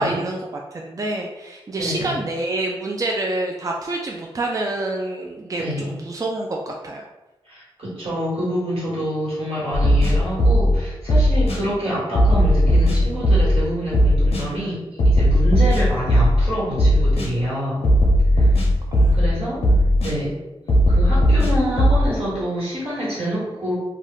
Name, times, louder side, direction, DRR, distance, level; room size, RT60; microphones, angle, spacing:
voice 1, 0.0-7.0 18.9-19.9, right 2 dB, 35° right, 0 dB, 0.3 m, -27 dB
voice 2, 1.8-2.2 5.6-5.9 7.4-17.9 18.3-18.6 19.1-19.6 20.0-20.3 20.9-23.7, equal, 75° right, -8 dB, 1.5 m, -26 dB
sound 1, 9.7-10.8 11.1-11.6 12.1-13.6 13.9-14.4 15.0-16.4 16.8-17.3 17.8-19.3 19.6-20.1 20.7-22.1, equal, 90° left, 0.6 m, -16 dB
2.4 x 2.3 x 3.4 m, 1.1 s
cardioid pair, 55°, 10 cm